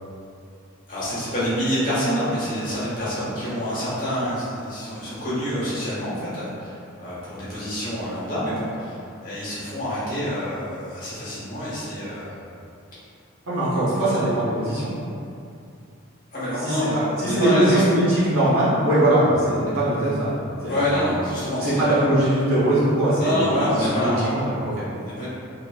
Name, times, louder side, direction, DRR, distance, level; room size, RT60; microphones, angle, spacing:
voice 1, 0.9-12.3 13.7-13.8 14.2-14.3 16.3-17.8 20.7-22.1 23.2-24.3 25.0-25.3, equal, 40° left, -11 dB, 1.0 m, -27 dB
voice 2, 13.5-14.9 16.6-21.1 21.6-24.8, right 1 dB, 75° right, -10 dB, 1.0 m, -21 dB
2.7 x 2.6 x 2.3 m, 2.5 s
head